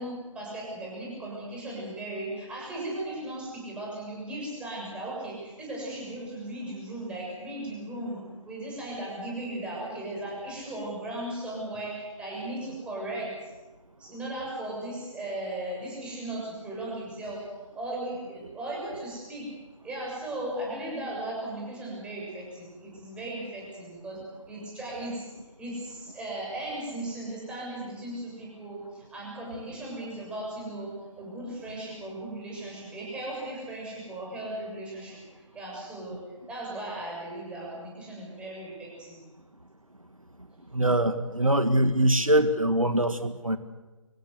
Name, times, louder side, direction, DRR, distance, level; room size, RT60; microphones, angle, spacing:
voice 1, 0.0-8.2 8.5-13.5 14.0-17.5 17.7-19.5 19.8-25.3 25.6-36.2 36.5-39.2, right 1 dB, 5° right, -4 dB, 7.1 m, -37 dB
voice 2, 40.7-43.6, right 1 dB, 85° right, 9 dB, 1.9 m, -23 dB
25.0 x 17.5 x 8.0 m, 1.2 s
figure-of-eight pair, 150°, 17 cm